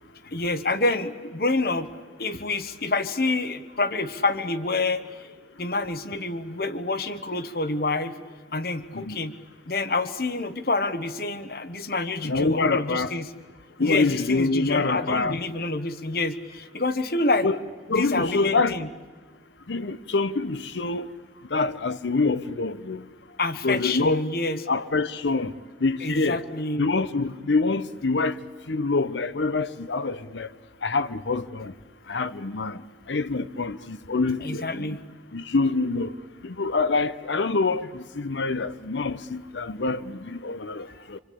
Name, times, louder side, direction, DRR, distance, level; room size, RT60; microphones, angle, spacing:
voice 1, 0.2-1.9 2.2-5.3 5.6-8.2 8.5-9.3 9.7-13.3 13.8-17.5 17.9-18.9 23.4-24.6 26.0-26.9 34.4-35.0 40.8-40.9, left 3 dB, 55° left, 1.2 m, -27 dB
voice 2, 12.2-13.1 13.8-15.4 17.4-17.6 17.9-18.8 19.7-21.1 21.5-23.0 23.6-24.2 24.7-25.5 25.8-26.4 26.8-28.4 28.7-30.5 30.8-31.7 32.1-32.8 33.1-35.0 35.3-36.1 36.4-41.2, left 3 dB, 90° left, 0.9 m, -26 dB
26.0 x 26.0 x 8.6 m
head